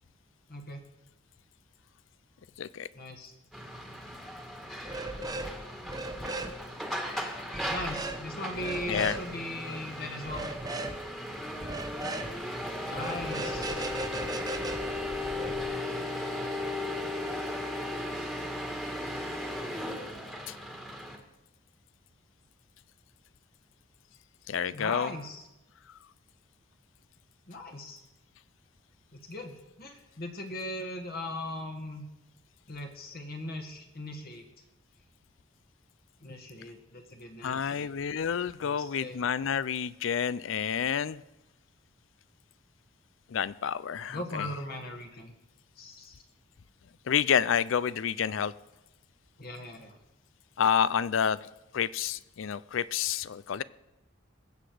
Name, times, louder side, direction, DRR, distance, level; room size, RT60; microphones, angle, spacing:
voice 1, 0.5-0.8 2.9-3.3 7.7-10.4 12.8-13.8 24.7-25.4 27.5-28.0 29.1-32.1 32.7-34.5 36.2-37.9 38.6-39.2 44.1-45.3 45.8-46.2 49.4-50.0, left 1 dB, 50° left, 4 dB, 1.8 m, -39 dB
sound 1, 3.5-21.2, left 1 dB, ahead, 1.6 m, -36 dB
sound 2, 4.8-5.5 5.8-6.5 7.5-8.2 8.5-9.2 10.2-11.0 11.6-12.3 12.9-15.6, right 2 dB, 20° right, 0.8 m, -37 dB
voice 2, 24.5-25.1 37.4-41.2 43.3-44.5 47.1-48.5 50.6-51.4 51.7-53.6, left 8 dB, 70° left, 18 dB, 0.4 m, -29 dB
20.5 x 7.9 x 5.0 m, 0.94 s
head